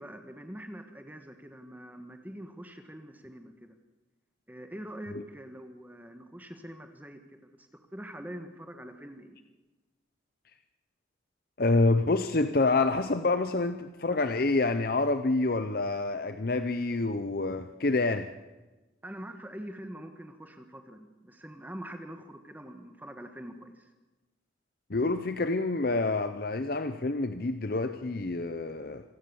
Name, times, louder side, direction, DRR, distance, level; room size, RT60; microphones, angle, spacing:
voice 1, 0.0-3.7 4.5-9.4 19.0-23.9, equal, 10° right, 6 dB, 1.5 m, -44 dB
voice 2, 11.6-18.3 24.9-29.0, left 3 dB, 50° left, 10 dB, 0.7 m, -27 dB
26.0 x 15.5 x 7.0 m, 1.1 s
head